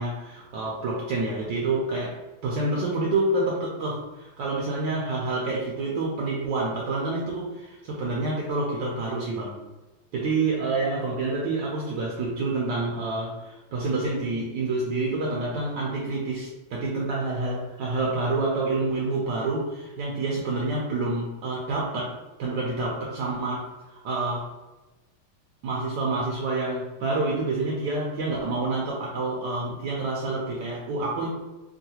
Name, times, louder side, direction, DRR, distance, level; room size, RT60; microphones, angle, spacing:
voice 1, 0.0-2.2 2.4-9.6 10.1-22.1 22.4-24.5 25.6-31.3, right 2 dB, 75° right, -3 dB, 1.1 m, -28 dB
3.7 x 2.3 x 2.7 m, 1.1 s
omnidirectional pair, 2.4 m